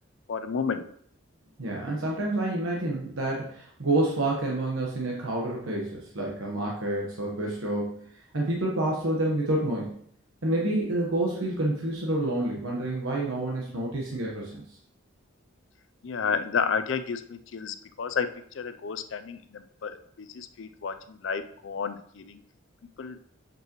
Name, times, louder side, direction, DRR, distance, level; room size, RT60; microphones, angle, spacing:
voice 1, 0.3-0.9 16.0-22.4 22.8-23.2, left 6 dB, 60° left, 10 dB, 0.4 m, -31 dB
voice 2, 1.6-8.0 8.3-9.9 10.4-14.6, right 1 dB, 75° right, -2 dB, 1.2 m, -28 dB
7.6 x 5.6 x 3.0 m, 0.64 s
head